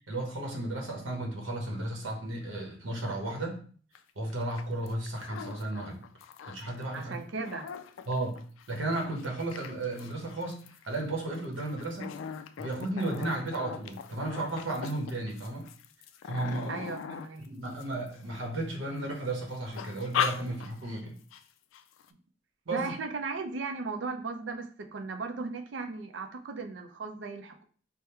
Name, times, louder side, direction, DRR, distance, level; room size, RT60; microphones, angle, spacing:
voice 1, 0.1-3.6 4.2-6.0 6.5-7.2 8.1-8.4 8.7-12.1 12.6-15.7 16.2-16.8 17.4-21.2 22.7-22.9, right 2 dB, 90° right, 1 dB, 0.9 m, -34 dB
sound 1, 3.9-4.0 4.3-6.8 7.2-18.6 19.0-19.4 19.7-21.0 21.3-21.4 21.7-22.1, left 8 dB, 85° left, 0.3 m, -39 dB
voice 2, 6.9-7.7 16.7-17.5 22.7-27.6, right 4 dB, 70° right, 5 dB, 0.5 m, -36 dB
3.5 x 2.1 x 4.3 m, 0.43 s
head